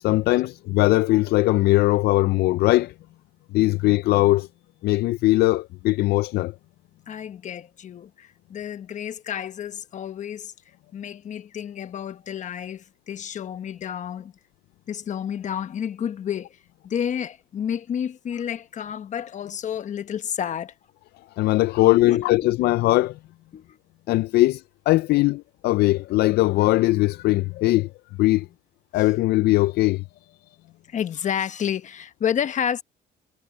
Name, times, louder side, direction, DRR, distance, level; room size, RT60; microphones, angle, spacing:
voice 1, 0.0-2.9 3.5-4.5 4.8-6.5 21.4-23.2 24.1-27.9 28.2-28.5 28.9-30.0, left 18 dB, 70° left, 0.4 m, -20 dB
voice 2, 7.1-10.5 10.9-14.3 14.9-16.6 16.8-20.7 21.8-22.4 23.5-23.8 29.0-29.1 30.9-32.8, left 9 dB, 45° left, 1.1 m, -30 dB
cardioid pair, 110°, 17 cm